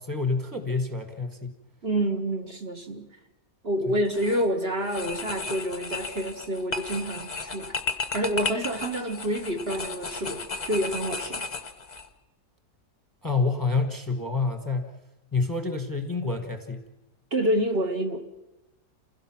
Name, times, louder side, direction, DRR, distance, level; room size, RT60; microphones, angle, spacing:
voice 1, 0.0-1.5 3.9-4.0 13.2-14.9 15.3-16.8, left 4 dB, 15° left, 6 dB, 1.3 m, -28 dB
voice 2, 1.8-3.1 3.6-7.7 8.1-11.4 17.3-18.2, right 1 dB, 40° right, 4 dB, 1.5 m, -28 dB
sound 1, 4.0-4.4 4.8-12.1, left 3 dB, 30° left, 1.0 m, -34 dB
28.0 x 16.5 x 5.9 m, 1.0 s
omnidirectional pair, 1.7 m